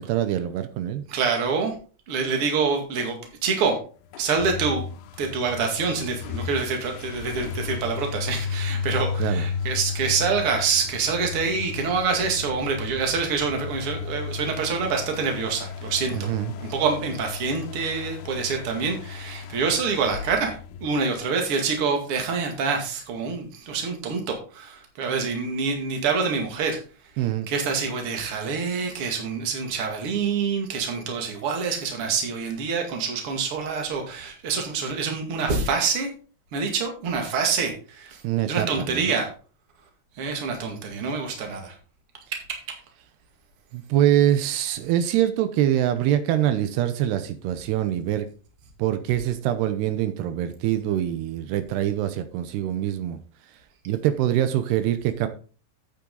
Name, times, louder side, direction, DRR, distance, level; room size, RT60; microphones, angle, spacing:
voice 1, 0.0-1.0 9.2-9.4 16.1-16.5 27.2-27.5 38.2-39.1 43.7-48.3 48.8-53.2 53.9-55.3, right 12 dB, 85° right, 10 dB, 2.9 m, -24 dB
voice 2, 1.1-1.7 2.1-3.2 3.4-3.8 4.2-4.8 5.2-16.3 16.6-26.8 27.5-36.1 36.5-38.2 38.5-39.3 40.2-41.7, right 5 dB, 40° right, 3 dB, 2.4 m, -26 dB
sound 1, 4.1-21.6, left 6 dB, 85° left, 2.8 m, -34 dB
8.8 x 8.6 x 4.0 m, 0.38 s
omnidirectional pair, 4.7 m